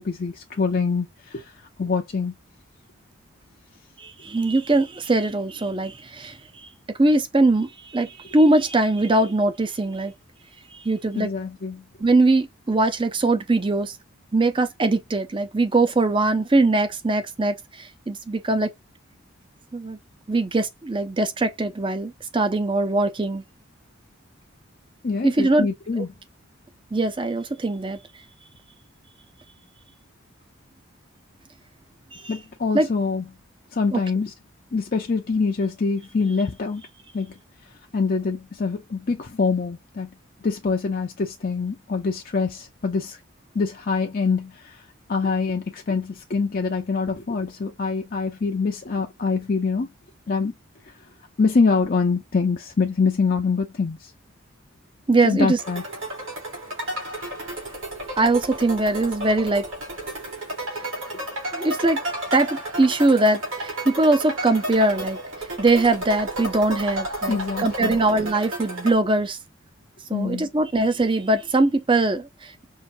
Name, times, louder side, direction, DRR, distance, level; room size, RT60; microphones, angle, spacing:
voice 1, 0.0-2.3 11.2-11.8 25.0-26.1 32.3-33.2 33.7-34.3 34.7-36.8 37.1-37.3 37.9-40.1 40.4-43.2 43.5-44.8 45.1-49.9 50.3-50.5 50.8-50.9 51.4-54.1 55.2-55.8 67.3-68.0 70.1-70.4, left 4 dB, 45° left, 0.5 m, -25 dB
voice 2, 4.0-6.7 7.0-10.1 10.8-11.3 12.0-13.9 14.3-18.7 19.7-20.0 20.3-23.4 25.2-25.7 26.0-26.1 26.9-28.0 32.1-32.3 32.7-32.9 33.9-34.0 55.1-55.6 58.2-59.7 61.5-62.0 62.3-65.2 65.6-69.4 70.1-72.6, right 2 dB, 25° right, 0.5 m, -21 dB
sound 1, 55.6-68.9, right 1 dB, 80° right, 2.9 m, -32 dB
5.5 x 2.5 x 2.5 m
head